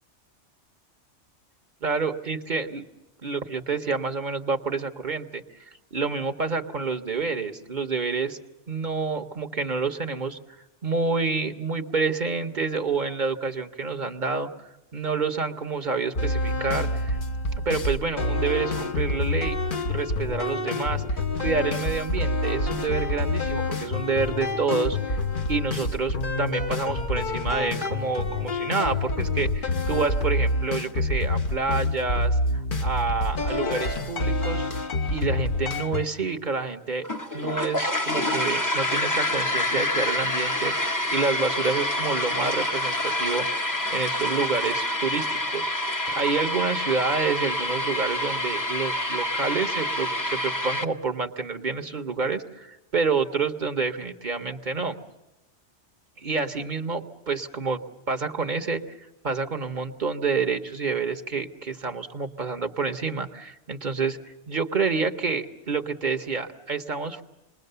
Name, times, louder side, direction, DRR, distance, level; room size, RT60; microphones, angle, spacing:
voice 1, 1.8-2.9 3.2-5.4 5.9-8.4 8.7-10.4 10.8-17.2 17.6-19.6 19.8-25.2 25.5-34.6 35.1-55.0 56.2-57.8 58.1-58.8 59.2-64.2 64.5-67.2, right 4 dB, 45° right, 5 dB, 1.0 m, -28 dB
sound 1, 16.1-36.1, left 2 dB, 45° left, 1.1 m, -27 dB
sound 2, 37.0-50.8, left 1 dB, 20° left, 0.8 m, -27 dB
27.5 x 21.0 x 6.7 m, 1.0 s
omnidirectional pair, 1.2 m